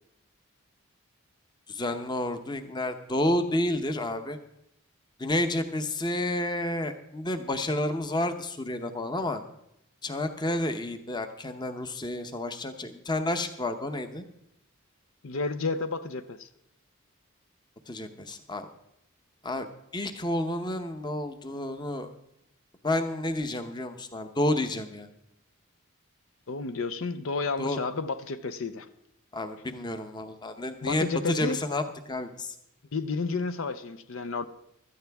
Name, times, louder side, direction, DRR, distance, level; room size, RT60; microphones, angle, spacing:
voice 1, 1.7-4.4 5.2-9.4 10.0-14.2 17.9-18.7 19.4-19.7 19.9-22.1 22.8-25.1 27.6-27.8 29.3-32.5, left 1 dB, 20° left, 8 dB, 0.8 m, -30 dB
voice 2, 15.2-16.5 26.5-28.9 30.8-31.6 32.9-34.5, left 4 dB, 70° left, 12 dB, 0.6 m, -31 dB
16.0 x 13.0 x 3.5 m, 0.78 s
head